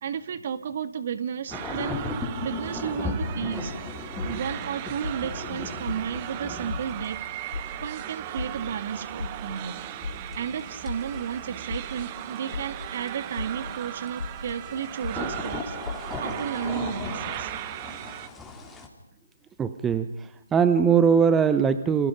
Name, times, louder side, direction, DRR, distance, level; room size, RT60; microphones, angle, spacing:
voice 1, 0.0-2.1 2.4-3.8 4.2-7.2 7.8-9.8 10.3-15.8 16.2-17.5, right 8 dB, 45° right, 12 dB, 2.1 m, -33 dB
sound 1, 1.5-18.9, left 3 dB, 5° left, 3.8 m, -38 dB
sound 2, 1.5-18.3, right 13 dB, 30° right, 1.3 m, -38 dB
sound 3, 3.6-3.7 4.2-4.5 5.0-5.4 5.9-6.2 6.7-7.1 7.5-7.9 8.4-8.7 9.2-9.5 10.0-10.4 10.9-11.2 11.7-12.1 12.5-12.9 13.4-13.7 14.2-14.5 15.0-15.4 15.9-16.2, left 4 dB, 70° left, 2.1 m, -34 dB
voice 2, 19.6-22.1, right 6 dB, 10° right, 11 dB, 1.0 m, -21 dB
29.5 x 28.0 x 5.3 m, 0.83 s
figure-of-eight pair, 145°, 0 cm